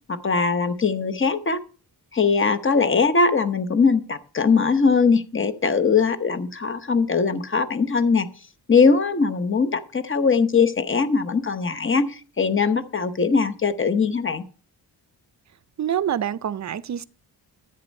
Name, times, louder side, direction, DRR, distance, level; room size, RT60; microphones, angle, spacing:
voice 1, 0.1-1.6 2.1-8.3 8.7-14.4, left 5 dB, 30° left, 0.9 m, -21 dB
voice 2, 15.8-17.0, right 9 dB, 45° right, 0.5 m, -26 dB
10.5 x 8.6 x 5.2 m
wide cardioid pair, 155°, 41 cm